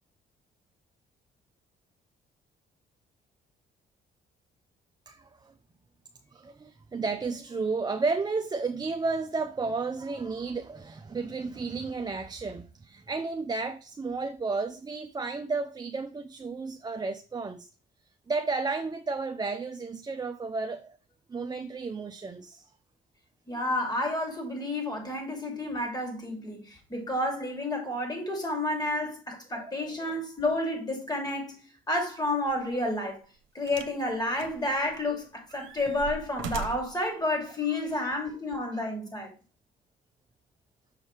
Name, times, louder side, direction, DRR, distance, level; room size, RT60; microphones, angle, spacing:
voice 1, 5.1-5.5 6.3-17.7 18.3-21.0 21.3-22.7 29.5-29.9 35.1-35.2 37.7-37.8, right 4 dB, 20° right, 0.5 m, -32 dB
voice 2, 23.5-31.6 31.9-33.2 33.5-39.3, left 1 dB, 20° left, 2.9 m, -30 dB
sound 1, 32.5-32.7 33.7-34.0 34.4-35.1 35.5-37.0 37.9-38.0, right 7 dB, 80° right, 0.9 m, -40 dB
6.4 x 4.8 x 3.3 m
cardioid pair, 90°, 20 cm